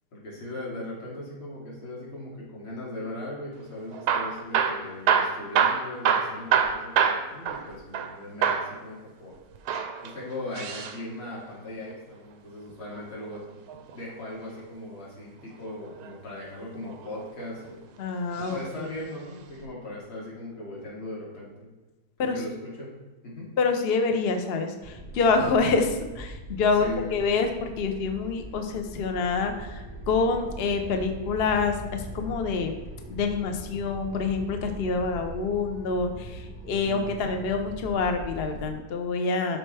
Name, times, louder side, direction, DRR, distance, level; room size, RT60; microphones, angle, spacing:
voice 1, 0.1-9.4 10.0-13.5 13.9-17.9 18.4-21.7 22.2-22.9 23.2-23.5 26.8-27.3 36.8-37.3, left 1 dB, 70° left, -6 dB, 3.3 m, -39 dB
Hammer / Drill, 3.9-8.1 8.4-8.7 9.5-11.0 12.7-14.0 15.7-16.1 16.8-17.7 18.4-18.6 18.9-19.0 19.6-19.7, right 7 dB, 90° right, 1.5 m, -26 dB
voice 2, 18.0-18.9 22.2-22.4 23.6-32.7 33.1-39.6, left 4 dB, 85° left, 5 dB, 0.5 m, -27 dB
sound 1, 24.8-38.7, right 1 dB, 15° right, 0.5 m, -41 dB
12.5 x 4.4 x 3.4 m, 1.2 s
omnidirectional pair, 2.3 m